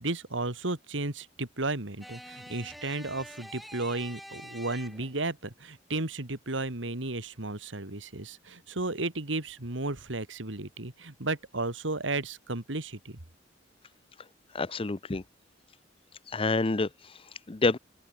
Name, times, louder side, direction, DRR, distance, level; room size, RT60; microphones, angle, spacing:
voice 1, 0.0-13.2, right 2 dB, 80° right, 2.6 m, -34 dB
sound 1, 2.0-5.3, equal, ahead, 2.8 m, -46 dB
voice 2, 14.5-15.2 16.3-17.8, left 3 dB, 30° left, 0.7 m, -28 dB
open air
head